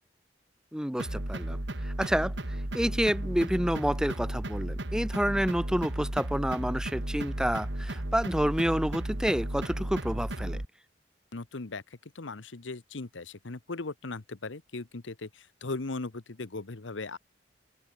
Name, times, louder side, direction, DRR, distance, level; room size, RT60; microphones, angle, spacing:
voice 1, 0.7-10.6, equal, 5° right, 1.1 m, -29 dB
sound 1, 1.0-10.7, right 1 dB, 70° right, 2.3 m, -34 dB
voice 2, 11.3-17.2, left 3 dB, 85° left, 1.1 m, -38 dB
open air
head